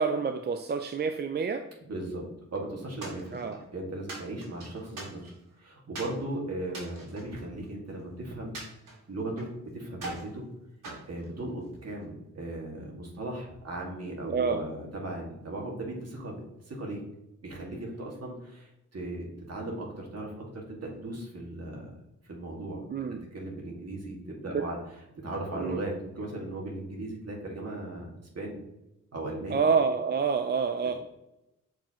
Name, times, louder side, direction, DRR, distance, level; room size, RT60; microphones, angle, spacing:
voice 1, 0.0-1.7 3.3-3.6 14.2-14.6 22.9-23.3 24.5-24.7 25.6-25.8 29.5-30.9, right 5 dB, 35° right, 7 dB, 0.4 m, -28 dB
voice 2, 1.9-8.6 9.1-10.4 11.1-17.0 17.4-21.9 22.2-24.8 25.2-28.1 28.3-28.6 29.1-29.6, right 1 dB, 50° right, -2 dB, 2.2 m, -37 dB
sound 1, 3.0-3.7 4.1-5.5 5.9-6.2 6.7-8.0 8.5-9.6 9.9-10.3 10.8-11.9, right 2 dB, 75° right, 2.3 m, -43 dB
7.3 x 4.7 x 3.0 m, 0.89 s
cardioid pair, 80°, 32 cm